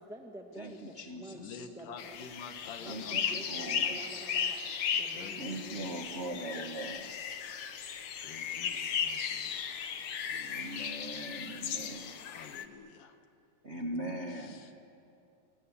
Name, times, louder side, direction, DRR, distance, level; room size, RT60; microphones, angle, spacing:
voice 1, 0.0-0.8 1.1-2.3 2.8-4.6 5.0-6.7, right 1 dB, 5° right, 3 dB, 0.7 m, -49 dB
voice 2, 0.6-1.7 2.8-4.0 5.3-7.2 10.4-12.2 13.6-14.7, right 1 dB, 35° right, 3 dB, 1.1 m, -41 dB
voice 3, 1.3-3.8 4.5-5.9 8.2-9.7 10.3-10.7 12.2-13.2 14.3-14.8, left 6 dB, 85° left, 7 dB, 3.1 m, -50 dB
sound 1, 2.0-12.7, left 7 dB, 55° left, 1.5 m, -36 dB
28.5 x 21.0 x 9.8 m, 2.7 s
omnidirectional pair, 3.6 m